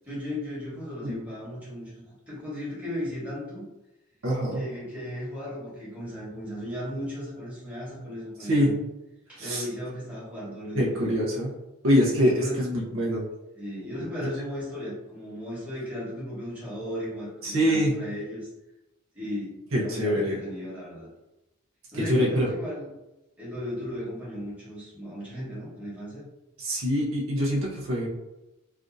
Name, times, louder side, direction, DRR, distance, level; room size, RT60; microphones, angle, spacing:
voice 1, 0.1-3.6 4.5-8.7 9.3-11.0 12.3-12.6 13.5-18.5 19.1-21.1 21.9-22.9 23.4-26.3, left 1 dB, 5° right, -8 dB, 1.2 m, -36 dB
voice 2, 4.2-4.6 8.5-8.7 9.4-9.6 10.8-11.5 11.8-13.2 17.4-18.0 19.7-20.4 22.1-22.5 26.6-28.1, equal, 65° right, -4 dB, 0.7 m, -24 dB
3.4 x 2.4 x 2.6 m, 0.96 s
head